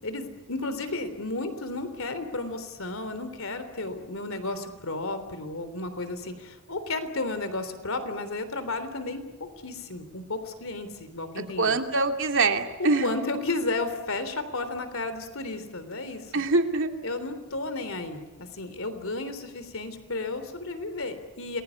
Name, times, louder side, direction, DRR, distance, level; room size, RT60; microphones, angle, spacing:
voice 1, 0.0-11.8 13.0-16.3 17.0-18.2 18.5-21.6, left 2 dB, 70° left, 11 dB, 3.5 m, -33 dB
voice 2, 11.6-13.1 16.3-16.9, right 3 dB, 65° right, 5 dB, 2.8 m, -24 dB
29.0 x 21.5 x 8.5 m, 1.3 s
head